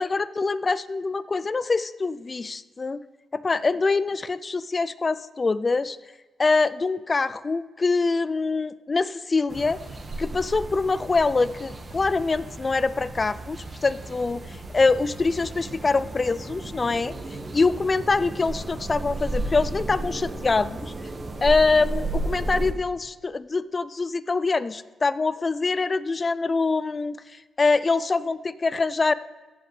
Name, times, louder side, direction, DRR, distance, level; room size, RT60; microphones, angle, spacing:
voice 1, 0.0-3.0 3.3-6.0 6.4-9.8 10.2-17.1 17.5-20.9 21.4-29.1, left 3 dB, 40° left, 17 dB, 0.4 m, -24 dB
sound 1, 9.5-22.7, right 2 dB, 40° right, 1.5 m, -34 dB
16.0 x 7.6 x 3.3 m, 1.3 s
supercardioid pair, 50°, 0 cm